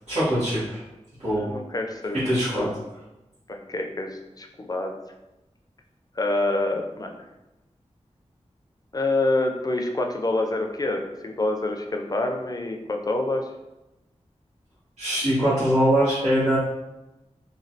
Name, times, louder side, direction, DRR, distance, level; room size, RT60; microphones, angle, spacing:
voice 1, 0.1-0.8 1.2-1.5 2.2-2.7 15.0-16.6, equal, 90° right, -14 dB, 1.2 m, -22 dB
voice 2, 1.4-2.7 3.5-4.9 6.2-7.1 8.9-13.5, left 2 dB, 30° left, 3 dB, 0.4 m, -27 dB
3.1 x 2.3 x 2.7 m, 0.97 s
wide cardioid pair, 70°, 12 cm